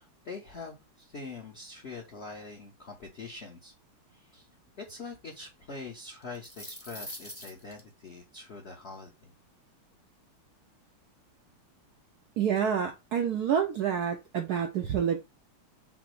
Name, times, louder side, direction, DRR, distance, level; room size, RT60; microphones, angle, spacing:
voice 1, 0.0-3.7 4.1-4.5 4.8-9.3, left 4 dB, 55° left, 0 dB, 0.7 m, -44 dB
sound 1, 6.2-7.8, left 1 dB, 20° left, 0.4 m, -43 dB
voice 2, 12.4-15.2, right 8 dB, 75° right, 4 dB, 0.9 m, -28 dB
5.8 x 2.1 x 4.4 m, 0.24 s
omnidirectional pair, 2.4 m